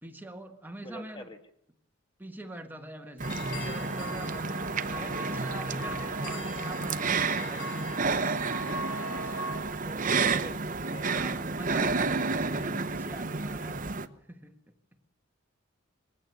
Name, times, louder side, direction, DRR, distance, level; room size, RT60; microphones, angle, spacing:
voice 1, 0.0-1.3 2.2-8.2 9.2-9.3 11.0-14.5, right 1 dB, 10° right, 5 dB, 1.6 m, -44 dB
voice 2, 0.8-1.4 9.8-11.2, equal, 20° left, 7 dB, 1.4 m, -45 dB
sound 1, 3.2-9.6, left 1 dB, 75° left, 6.6 m, -40 dB
sound 2, 3.2-14.1, right 4 dB, 40° right, 0.9 m, -31 dB
22.0 x 16.5 x 7.8 m, 0.74 s
head